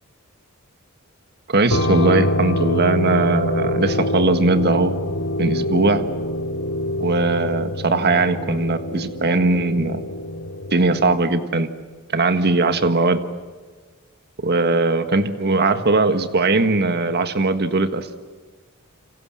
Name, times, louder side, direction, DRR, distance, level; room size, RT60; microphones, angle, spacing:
voice 1, 1.5-5.0 5.4-6.0 7.0-10.0 10.7-11.7 12.1-13.2 14.4-18.2, right 3 dB, 50° right, 9 dB, 1.6 m, -19 dB
sound 1, 1.7-11.2, left 1 dB, 85° left, 2.7 m, -25 dB
29.0 x 26.5 x 7.6 m, 1.4 s
head